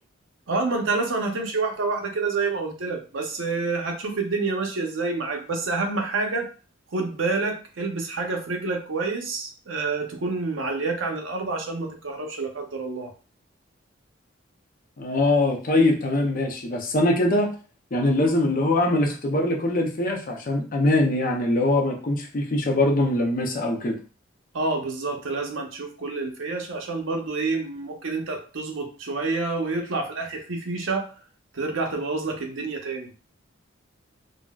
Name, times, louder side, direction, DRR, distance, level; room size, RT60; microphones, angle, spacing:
voice 1, 0.5-6.5 6.9-13.1 24.5-31.1 31.5-33.1, right 3 dB, 75° right, 2 dB, 0.7 m, -28 dB
voice 2, 15.0-17.5 17.9-24.0, left 2 dB, 45° left, 2 dB, 0.5 m, -22 dB
3.8 x 2.0 x 2.3 m, 0.37 s
head